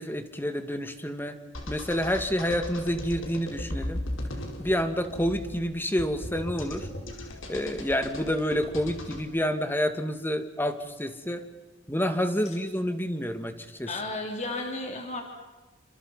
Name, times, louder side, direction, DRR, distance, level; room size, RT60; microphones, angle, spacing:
voice 1, 0.0-1.4 1.7-4.0 4.6-6.9 7.2-11.5 11.9-13.9, equal, 10° left, 8 dB, 2.2 m, -29 dB
sound 1, 1.5-9.2, left 1 dB, 85° left, 5.0 m, -37 dB
voice 2, 13.9-15.2, left 2 dB, 40° left, 2 dB, 3.7 m, -33 dB
29.5 x 26.5 x 5.7 m, 1.2 s
head